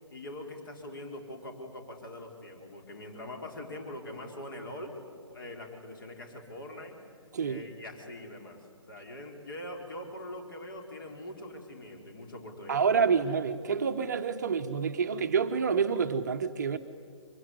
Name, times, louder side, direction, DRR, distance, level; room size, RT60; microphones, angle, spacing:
voice 1, 0.1-4.9 5.3-7.0 7.4-13.0, left 1 dB, 45° left, 4.2 m, -43 dB
voice 2, 12.7-16.8, right 6 dB, 35° right, 0.9 m, -28 dB
24.0 x 23.0 x 9.6 m
figure-of-eight pair, 145°, 16 cm